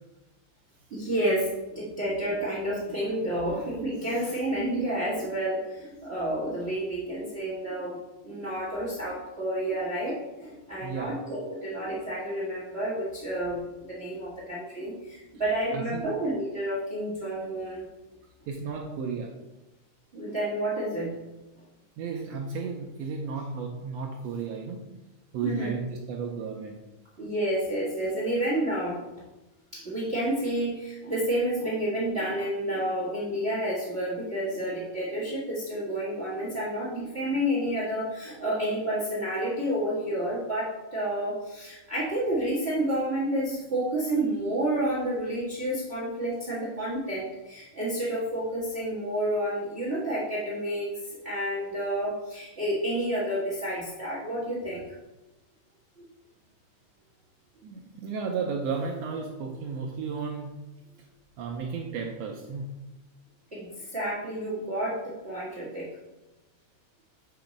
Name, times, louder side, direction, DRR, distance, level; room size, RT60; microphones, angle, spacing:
voice 1, 0.9-13.6 13.9-17.8 20.1-21.2 25.4-25.7 27.2-29.0 29.7-54.8 56.0-56.1 63.5-65.9, right 1 dB, 45° right, -6 dB, 0.8 m, -30 dB
voice 2, 10.8-11.2 15.7-16.1 18.5-19.3 22.0-24.8 25.3-26.8 57.6-60.5 61.4-62.7, right 5 dB, 85° right, 1 dB, 1.4 m, -33 dB
6.9 x 3.0 x 5.0 m, 1.0 s
omnidirectional pair, 3.6 m